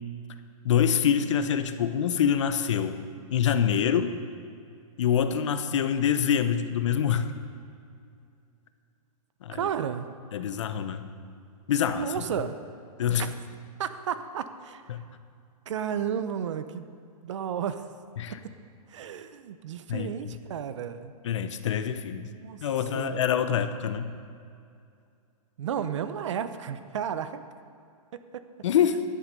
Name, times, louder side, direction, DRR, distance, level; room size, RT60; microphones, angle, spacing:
voice 1, 0.6-3.0 3.3-4.2 5.0-7.3 9.4-9.7 10.3-11.0 11.7-12.1 13.0-13.3 14.9-15.0 18.2-18.4 19.9-20.1 21.2-22.3 22.6-24.1 28.6-29.0, left 8 dB, 50° left, 10 dB, 0.7 m, -25 dB
voice 2, 9.5-10.1 11.9-12.6 13.2-13.3 13.8-14.8 15.7-16.8 17.2-17.9 18.9-21.1 22.1-22.6 22.9-23.2 25.6-27.4 28.1-28.5, right 8 dB, 50° right, 11 dB, 0.6 m, -33 dB
11.0 x 10.5 x 5.3 m, 2.4 s
hypercardioid pair, 175°, 19 cm